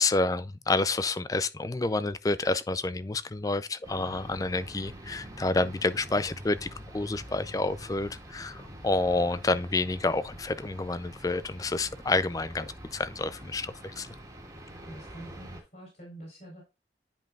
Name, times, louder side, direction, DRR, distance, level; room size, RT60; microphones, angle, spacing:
voice 1, 0.0-14.1, left 2 dB, 20° left, 0.4 m, -29 dB
sound 1, 3.8-15.6, equal, 20° right, 1.8 m, -46 dB
voice 2, 14.6-16.6, right 1 dB, 50° left, 3.6 m, -46 dB
10.0 x 5.3 x 2.4 m
head